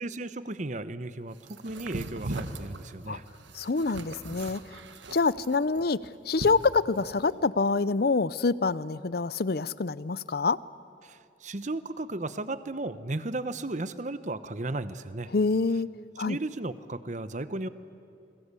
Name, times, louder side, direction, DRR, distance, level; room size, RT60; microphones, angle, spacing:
voice 1, 0.0-3.2 11.0-15.3 16.2-17.7, right 2 dB, 40° right, 13 dB, 0.8 m, -35 dB
sound 1, 1.4-7.2, right 2 dB, 75° right, 1.6 m, -39 dB
voice 2, 3.5-4.6 5.1-6.0 6.3-10.6 15.3-15.9 16.2-16.4, left 4 dB, 55° left, 18 dB, 0.6 m, -26 dB
28.0 x 21.5 x 8.3 m, 2.4 s
head